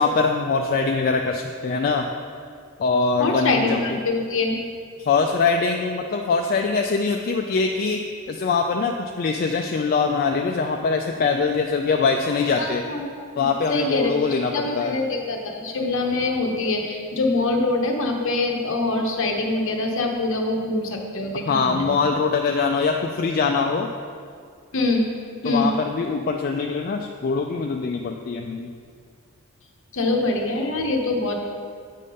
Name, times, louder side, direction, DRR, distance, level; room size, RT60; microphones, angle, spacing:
voice 1, 0.0-2.1 2.8-4.0 5.0-8.0 8.3-12.8 13.4-15.0 21.5-23.9 25.4-28.7, left 4 dB, 40° left, 3 dB, 0.3 m, -23 dB
voice 2, 3.2-4.6 12.6-14.1 14.5-22.0 24.7-25.1 25.4-25.7 29.9-31.4, left 2 dB, 60° left, 2 dB, 0.9 m, -24 dB
8.4 x 3.6 x 5.4 m, 2.1 s
head